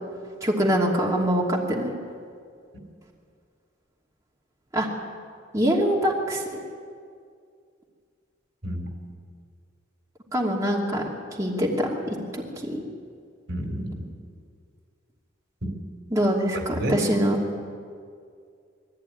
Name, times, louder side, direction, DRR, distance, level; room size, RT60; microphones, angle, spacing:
voice 1, 0.4-1.9 4.7-4.9 5.5-6.4 10.3-11.1 11.4-12.8 16.1-17.4, equal, 15° right, -3 dB, 2.7 m, -24 dB
voice 2, 13.5-14.1 15.6-15.8 16.7-17.0, equal, 80° right, 3 dB, 3.6 m, -29 dB
22.5 x 15.0 x 9.3 m, 2.2 s
head